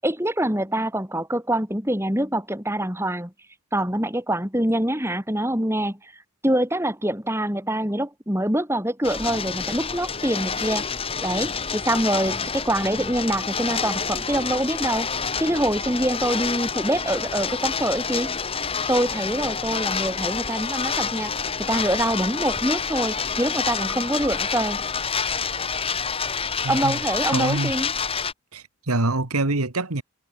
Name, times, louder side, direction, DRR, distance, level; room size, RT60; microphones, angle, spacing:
voice 1, 0.0-3.3 3.7-6.1 6.4-10.8 11.2-15.1 15.4-18.3 18.9-24.8 26.7-27.9, right 1 dB, 10° right, 5.7 m, -25 dB
sound 1, 9.0-28.3, left 5 dB, 25° left, 1.9 m, -28 dB
voice 2, 26.6-27.0 27.3-27.7 28.5-30.0, right 2 dB, 90° right, 2.0 m, -25 dB
head